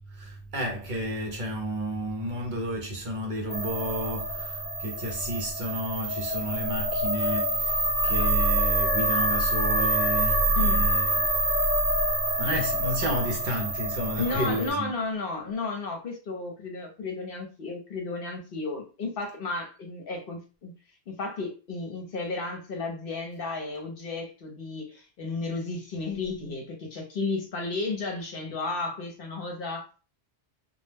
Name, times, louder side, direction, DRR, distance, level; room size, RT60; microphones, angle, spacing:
voice 1, 0.1-11.9 12.4-14.9, right 1 dB, 55° right, 0.7 m, -32 dB
sound 1, 3.5-14.7, right 1 dB, 30° left, 0.8 m, -26 dB
voice 2, 14.2-20.7 21.1-29.8, left 3 dB, 60° left, 0.8 m, -33 dB
2.2 x 2.0 x 3.2 m
omnidirectional pair, 1.1 m